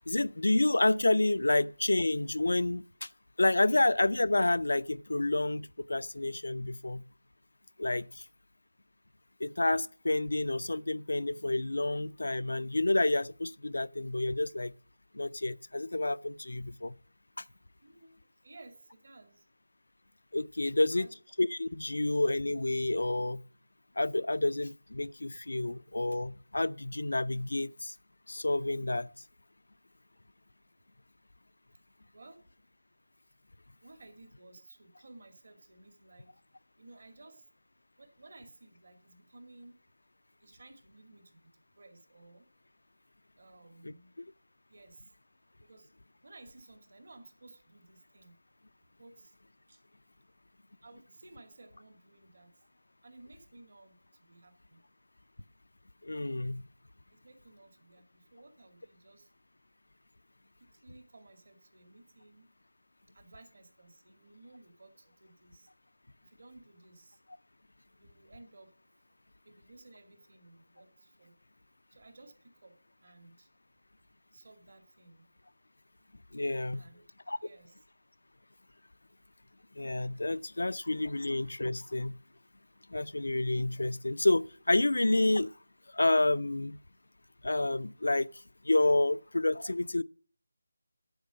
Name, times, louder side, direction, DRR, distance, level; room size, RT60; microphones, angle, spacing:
voice 1, 0.1-3.1 3.4-7.0 7.8-8.2 9.4-14.7 15.1-17.0 20.3-21.1 21.4-23.4 24.0-27.9 28.3-29.1 56.0-56.6 76.3-76.8 77.3-77.4 79.8-82.2 82.9-85.5 85.9-86.8 87.4-88.3 88.6-90.0, left 2 dB, 85° left, 0.4 m, -29 dB
voice 2, 17.8-19.5 20.7-21.2 32.1-32.5 33.8-36.4 36.8-37.5 38.0-39.8 40.4-42.5 43.4-44.1 44.7-45.1 45.6-45.9 46.2-48.4 49.0-49.3 49.7-49.8 50.8-52.5 53.0-54.8 57.1-59.3 60.7-62.5 63.1-65.7 66.2-67.2 68.0-68.7 69.4-71.3 71.9-73.5 74.3-75.3 76.7-77.0 77.4-77.8 81.1-81.2, right 2 dB, 60° right, 2.1 m, -56 dB
8.6 x 8.0 x 6.2 m
figure-of-eight pair, 170°, 0 cm